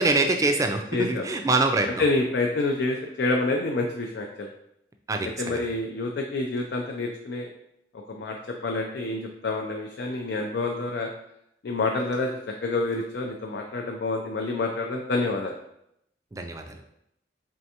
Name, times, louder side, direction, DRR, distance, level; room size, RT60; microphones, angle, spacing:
voice 1, 0.0-1.9 5.1-5.6 16.3-16.8, right 3 dB, 20° right, 4 dB, 0.4 m, -24 dB
voice 2, 0.9-1.3 2.0-4.5 5.4-7.5 7.9-11.1 11.6-15.5, left 2 dB, 65° left, 1 dB, 0.4 m, -28 dB
4.5 x 3.4 x 2.7 m, 0.78 s
head